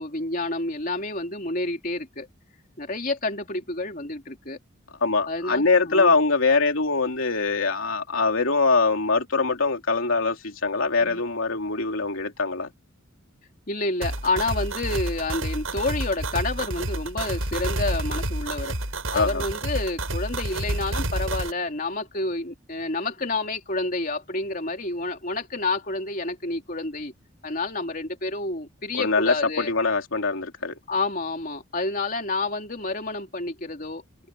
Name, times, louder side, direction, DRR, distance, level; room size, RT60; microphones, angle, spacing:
voice 1, 0.0-2.3 2.8-4.6 5.3-6.2 11.0-11.2 13.7-18.8 19.1-27.1 27.4-29.7 30.9-34.0, left 2 dB, 40° left, 3.3 m, -29 dB
voice 2, 5.0-12.7 19.1-19.4 28.9-30.8, left 4 dB, 80° left, 2.9 m, -23 dB
sound 1, 14.0-21.5, right 1 dB, 80° right, 8.0 m, -29 dB
head